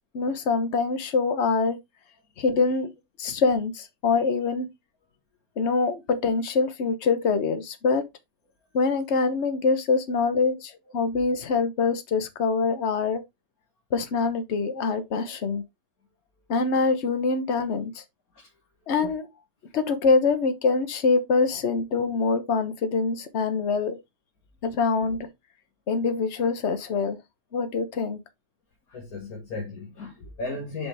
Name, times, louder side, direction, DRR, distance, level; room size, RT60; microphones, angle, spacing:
voice 1, 0.1-1.8 2.4-2.9 3.2-4.7 5.6-8.0 8.7-13.2 13.9-15.6 16.5-18.0 18.9-19.2 19.7-24.0 24.6-25.3 25.9-27.2 27.5-28.2, left 4 dB, 50° left, 1.3 m, -24 dB
voice 2, 28.9-30.9, left 3 dB, 80° left, 2.3 m, -36 dB
6.4 x 5.2 x 3.4 m
omnidirectional pair, 1.5 m